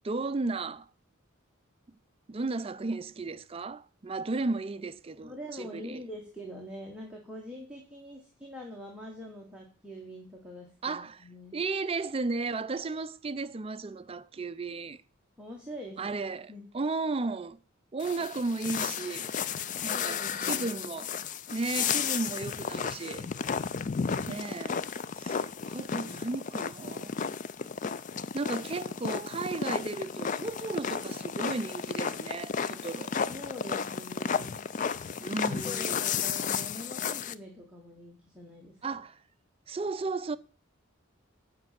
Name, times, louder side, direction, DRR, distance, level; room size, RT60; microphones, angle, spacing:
voice 1, 0.0-0.9 2.3-6.0 10.8-11.2 11.5-15.0 16.0-17.6 17.9-19.3 19.8-21.1 21.5-23.3 24.3-24.9 25.2-27.2 28.3-33.1 35.2-36.0 38.8-39.2 39.7-40.4, right 3 dB, 30° right, 0.4 m, -34 dB
voice 2, 5.2-11.6 15.4-16.2 16.5-16.7 19.9-20.8 33.3-34.7 35.6-39.0, equal, 5° right, 1.3 m, -44 dB
sound 1, 18.0-37.3, left 6 dB, 40° left, 0.4 m, -33 dB
8.0 x 5.2 x 7.4 m
head